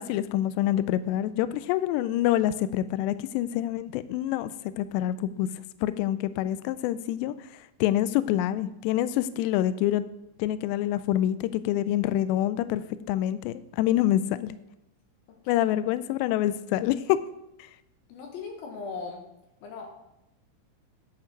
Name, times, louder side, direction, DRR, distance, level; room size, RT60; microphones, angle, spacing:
voice 1, 0.0-5.5 5.8-7.3 7.8-10.1 10.4-14.6 15.5-17.2, left 13 dB, 85° left, 14 dB, 2.5 m, -26 dB
voice 2, 18.1-19.2 19.6-19.9, left 4 dB, 70° left, 2 dB, 2.5 m, -38 dB
11.0 x 5.7 x 5.2 m, 0.89 s
omnidirectional pair, 5.4 m